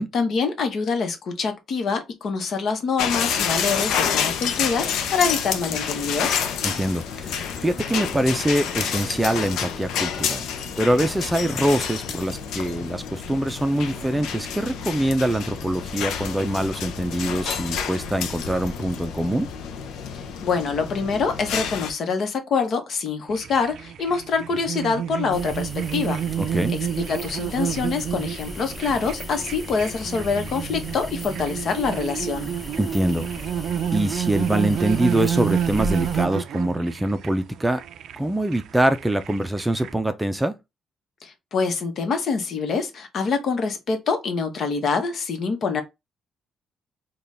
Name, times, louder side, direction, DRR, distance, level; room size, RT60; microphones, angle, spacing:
voice 1, 0.1-6.4 20.4-26.2 27.1-32.5 41.2-45.8, left 5 dB, 60° left, 1.0 m, -25 dB
sound 1, 3.0-21.9, left 7 dB, 85° left, 0.5 m, -29 dB
voice 2, 6.6-10.5 10.8-19.5 26.4-26.7 32.8-33.3 33.9-37.8 38.2-40.5, right 1 dB, 10° right, 0.5 m, -24 dB
sound 2, 23.3-39.9, right 9 dB, 75° right, 0.3 m, -29 dB
sound 3, 25.3-36.3, left 1 dB, 20° left, 0.9 m, -37 dB
3.9 x 2.3 x 3.3 m
cardioid pair, 90°, 0 cm